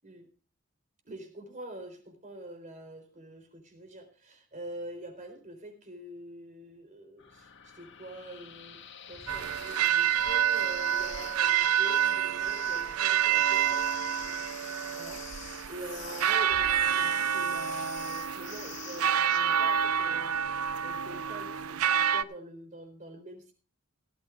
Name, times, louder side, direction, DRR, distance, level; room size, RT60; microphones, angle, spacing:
voice 1, 1.1-8.8 9.1-13.9 15.0-15.2 15.7-23.5, right 1 dB, 35° right, 5 dB, 3.9 m, -45 dB
sound 1, 7.2-19.4, left 9 dB, 55° left, 2.0 m, -46 dB
sound 2, 9.3-22.2, right 9 dB, 85° right, 0.6 m, -28 dB
17.5 x 13.5 x 2.5 m, 0.36 s
head